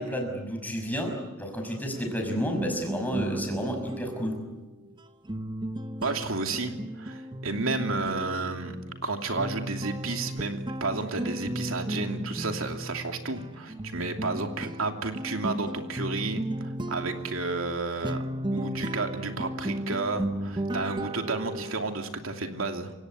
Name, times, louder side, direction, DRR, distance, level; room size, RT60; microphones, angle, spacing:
voice 1, 0.0-4.5, equal, 10° left, 3 dB, 5.8 m, -31 dB
sound 1, 1.9-21.8, right 1 dB, 20° right, 1.1 m, -35 dB
voice 2, 6.0-8.8 9.0-18.2 18.5-22.9, right 3 dB, 80° right, 5 dB, 2.8 m, -32 dB
28.5 x 17.0 x 9.8 m, 1.1 s
head